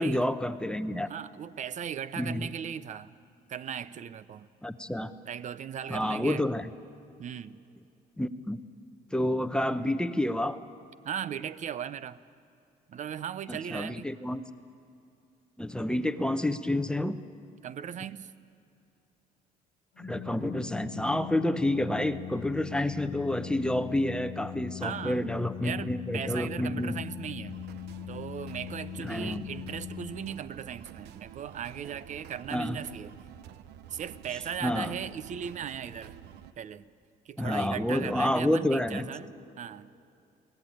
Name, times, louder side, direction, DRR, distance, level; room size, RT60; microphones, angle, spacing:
voice 1, 0.0-1.1 2.2-2.5 4.6-5.1 5.9-6.7 8.2-8.6 9.1-10.6 13.5-14.4 15.6-17.2 20.0-27.0 29.0-29.4 32.5-32.8 34.6-34.9 37.4-39.1, left 1 dB, 5° left, 10 dB, 0.8 m, -29 dB
voice 2, 1.1-3.1 3.5-4.5 5.3-6.4 7.2-7.6 11.0-12.2 12.9-14.1 17.6-18.3 24.8-25.2 25.6-27.6 28.1-33.1 33.9-36.2 36.6-36.9 37.3-39.9, right 8 dB, 45° right, 16 dB, 0.7 m, -38 dB
Organ, 20.0-30.8, left 11 dB, 85° left, 0.7 m, -41 dB
sound 1, 26.8-36.5, right 9 dB, 80° right, 0.9 m, -49 dB
23.0 x 17.0 x 9.2 m, 2.6 s
cardioid pair, 110°, 17 cm